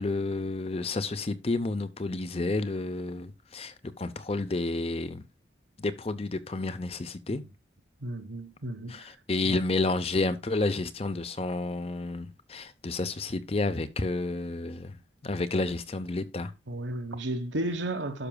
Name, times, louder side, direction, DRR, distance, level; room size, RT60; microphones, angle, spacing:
voice 1, 0.0-5.2 5.8-7.4 8.9-15.0 15.2-16.5, left 2 dB, 30° left, 0.6 m, -30 dB
voice 2, 8.0-9.0 9.4-9.6 16.7-18.3, right 1 dB, 85° right, 1.2 m, -33 dB
12.0 x 5.9 x 2.2 m
head